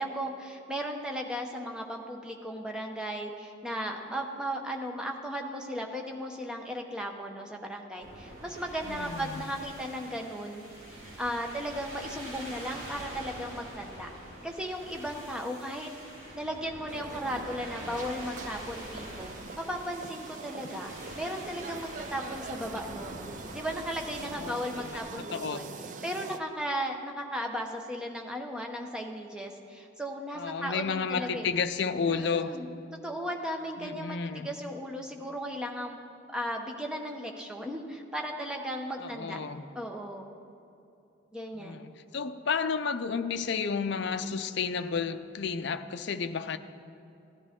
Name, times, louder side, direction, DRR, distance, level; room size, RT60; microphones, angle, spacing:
voice 1, 0.0-10.6 11.2-14.1 14.4-15.9 16.3-19.3 19.6-23.2 23.5-25.7 26.0-31.5 32.1-32.7 33.0-36.0 36.3-39.4 39.7-40.3 41.3-41.9, equal, 5° right, 1 dB, 0.8 m, -36 dB
sound 1, 8.0-25.1, right 1 dB, 80° right, 3.0 m, -45 dB
voice 2, 8.8-9.4 24.2-25.6 30.4-32.6 33.8-34.5 39.0-39.6 41.5-46.6, left 5 dB, 55° left, 10 dB, 0.5 m, -32 dB
sound 2, 16.9-26.4, right 4 dB, 40° right, 0.4 m, -43 dB
16.5 x 11.0 x 3.7 m, 2.7 s
head